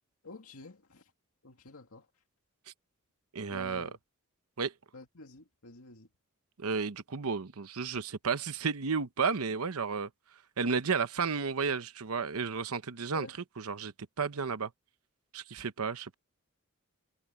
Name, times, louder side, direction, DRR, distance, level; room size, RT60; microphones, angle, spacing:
voice 1, 0.2-1.1 1.4-2.1 3.5-4.0 4.9-6.1 13.1-13.4, left 2 dB, 80° left, 2.2 m, -49 dB
voice 2, 3.3-3.9 4.6-4.7 6.6-10.1 10.6-13.3 13.6-14.7 15.3-16.1, right 5 dB, 90° right, 0.9 m, -32 dB
head